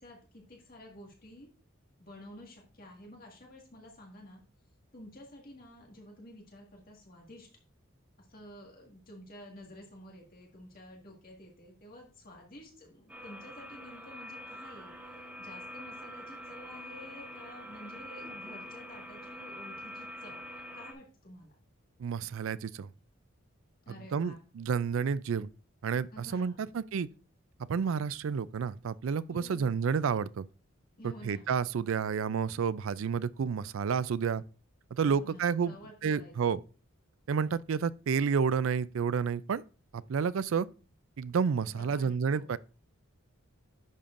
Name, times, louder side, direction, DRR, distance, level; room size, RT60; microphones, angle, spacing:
voice 1, 0.0-1.5 2.0-4.4 4.9-7.5 8.2-21.5 23.9-24.4 26.1-26.8 29.3-29.8 31.0-31.5 35.1-36.5 41.7-42.5, left 1 dB, 45° left, 1.8 m, -51 dB
sound 1, 13.1-20.9, equal, 5° right, 1.7 m, -45 dB
voice 2, 22.0-22.9 23.9-25.5 25.8-27.1 27.7-30.4 31.2-34.4 34.9-35.8 36.0-36.6 37.3-39.6 39.9-40.7 41.2-42.6, right 6 dB, 75° right, 0.4 m, -30 dB
11.0 x 6.9 x 2.5 m
head